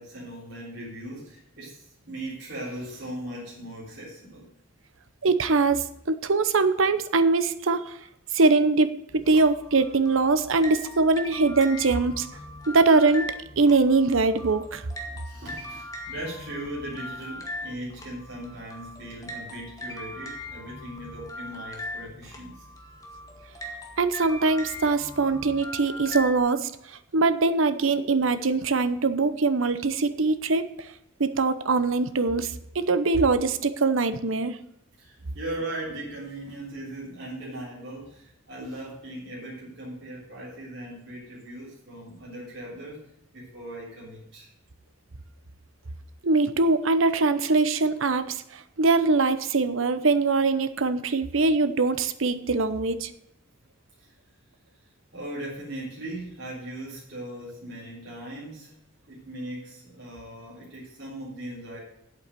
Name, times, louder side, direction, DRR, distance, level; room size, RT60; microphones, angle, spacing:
voice 1, 0.0-4.5 15.1-22.7 35.0-43.1 43.3-44.5 54.0-54.1 55.1-58.7 59.1-61.8, right 1 dB, 55° right, -7 dB, 3.6 m, -39 dB
voice 2, 5.2-8.0 8.3-12.3 12.7-14.8 24.0-26.7 27.1-30.9 31.2-34.6 46.2-53.1, right 3 dB, 75° right, 12 dB, 0.8 m, -22 dB
sound 1, 9.1-26.4, left 1 dB, 15° left, 1.6 m, -40 dB
8.4 x 8.4 x 7.6 m, 0.77 s
head